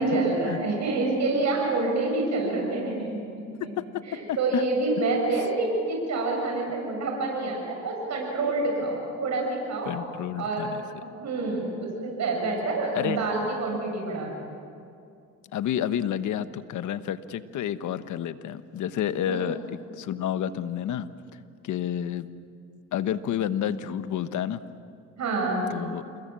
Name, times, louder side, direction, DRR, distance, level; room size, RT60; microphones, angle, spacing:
voice 1, 0.0-3.2 4.1-9.9 10.4-10.7 11.1-14.5 19.3-19.4 25.2-25.7, right 2 dB, 65° right, 0 dB, 7.3 m, -27 dB
voice 2, 3.6-4.6 9.9-10.8 12.9-13.2 15.5-21.1 21.6-22.3 22.9-24.6 25.7-26.0, left 10 dB, 75° left, 12 dB, 1.1 m, -30 dB
28.0 x 21.5 x 7.5 m, 2.5 s
cardioid pair, 90°, 30 cm